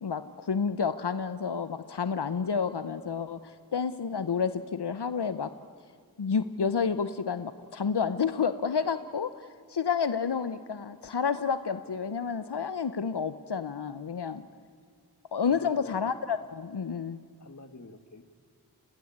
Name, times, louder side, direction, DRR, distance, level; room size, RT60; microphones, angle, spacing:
voice 1, 0.0-5.5 6.2-14.4 15.3-17.2, left 6 dB, 85° left, 13 dB, 0.9 m, -30 dB
voice 2, 15.5-16.0 17.4-18.3, left 2 dB, 45° left, 10 dB, 2.1 m, -48 dB
30.0 x 22.5 x 8.8 m, 2.1 s
wide cardioid pair, 50°, 39 cm